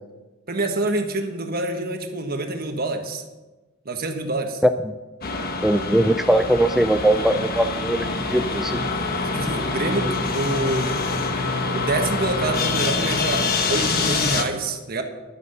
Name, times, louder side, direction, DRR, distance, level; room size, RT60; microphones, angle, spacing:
voice 1, 0.5-3.2 3.8-4.6 9.3-10.9 11.7-13.4 13.7-15.0, right 2 dB, 45° right, 5 dB, 1.4 m, -26 dB
sound 1, 5.2-14.4, left 3 dB, 45° left, 1.2 m, -25 dB
voice 2, 5.6-8.8, right 1 dB, ahead, 7 dB, 0.3 m, -20 dB
11.0 x 9.1 x 6.8 m, 1.2 s
head